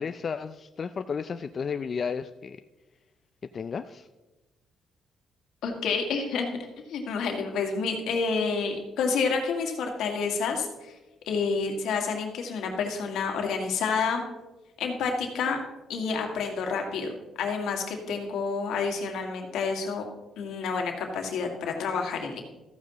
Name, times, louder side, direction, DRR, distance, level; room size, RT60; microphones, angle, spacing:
voice 1, 0.0-2.6 3.5-4.1, left 6 dB, 45° left, 10 dB, 0.4 m, -33 dB
voice 2, 5.6-6.5 6.9-10.9 11.3-14.2 14.8-15.6 15.9-17.1 17.4-20.1 20.4-22.4, left 5 dB, 80° left, 3 dB, 1.9 m, -29 dB
14.0 x 9.3 x 3.0 m, 1.1 s
cardioid pair, 90°, 0 cm